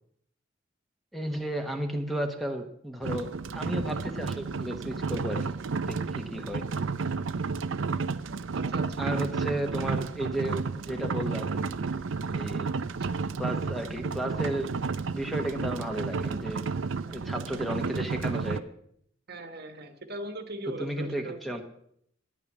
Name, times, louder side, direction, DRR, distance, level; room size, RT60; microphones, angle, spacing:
voice 1, 1.1-5.6 5.8-6.9 9.0-11.8 12.3-12.7 13.4-14.7 15.1-16.6 17.1-18.6 20.8-21.6, right 1 dB, ahead, 4 dB, 1.1 m, -33 dB
sound 1, 3.0-18.6, right 4 dB, 75° right, 0.6 m, -32 dB
voice 2, 8.5-9.0 19.3-21.6, right 1 dB, 55° right, 8 dB, 1.3 m, -39 dB
10.5 x 8.7 x 7.3 m, 0.70 s
head